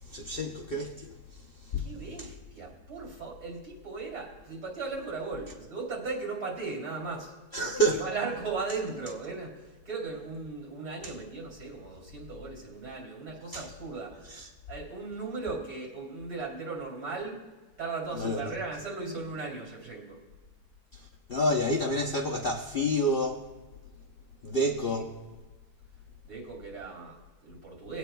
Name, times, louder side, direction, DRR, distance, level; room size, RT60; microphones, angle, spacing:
voice 1, 0.0-1.9 2.2-2.3 7.5-8.0 11.0-11.1 13.5-13.7 14.3-14.5 18.2-18.5 20.9-23.5 24.4-25.1, equal, 50° left, 0.7 m, -29 dB
voice 2, 1.8-14.4 14.7-17.5 17.8-20.2 24.8-25.0 26.3-28.0, right 4 dB, 65° right, 3.6 m, -37 dB
20.5 x 8.8 x 2.2 m
omnidirectional pair, 1.8 m